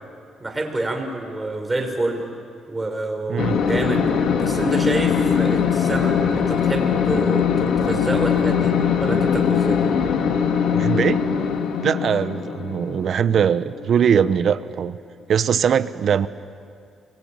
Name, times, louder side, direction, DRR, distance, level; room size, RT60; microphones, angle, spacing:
voice 1, 0.4-2.2 2.7-4.0 4.4-8.7 9.0-9.8, right 2 dB, 20° right, 3 dB, 5.6 m, -27 dB
voice 2, 3.3-3.6 10.7-11.2 11.8-15.0 15.3-16.3, right 8 dB, 60° right, 14 dB, 1.0 m, -21 dB
sound 1, 3.4-14.4, left 7 dB, 75° left, 2.1 m, -21 dB
28.0 x 23.0 x 8.9 m, 2.3 s
cardioid pair, 90°, 0 cm